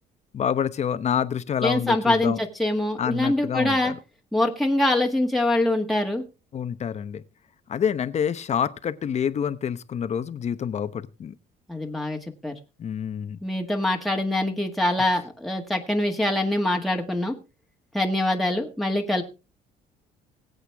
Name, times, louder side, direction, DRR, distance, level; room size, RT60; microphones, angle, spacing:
voice 1, 0.3-2.4 3.0-4.0 6.5-7.2 7.7-11.3 12.8-13.4, left 8 dB, 40° left, 1.0 m, -27 dB
voice 2, 1.6-3.9 4.3-6.2 11.7-12.5 13.4-17.3 17.9-19.2, left 1 dB, ahead, 1.7 m, -24 dB
21.0 x 8.1 x 3.5 m
cardioid pair, 110°, 17 cm